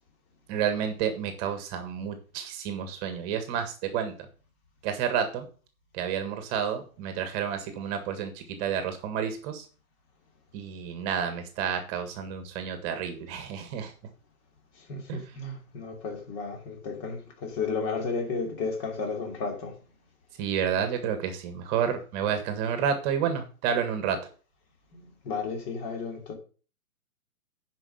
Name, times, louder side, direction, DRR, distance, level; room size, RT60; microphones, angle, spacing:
voice 1, 0.5-4.1 4.8-5.5 5.9-9.6 10.5-13.9 15.1-15.2 20.4-24.2, right 8 dB, 25° right, 1.6 m, -30 dB
voice 2, 15.3-19.7 25.2-26.3, left 4 dB, 30° left, 2.7 m, -32 dB
9.9 x 5.4 x 5.5 m
hypercardioid pair, 145°, 44 cm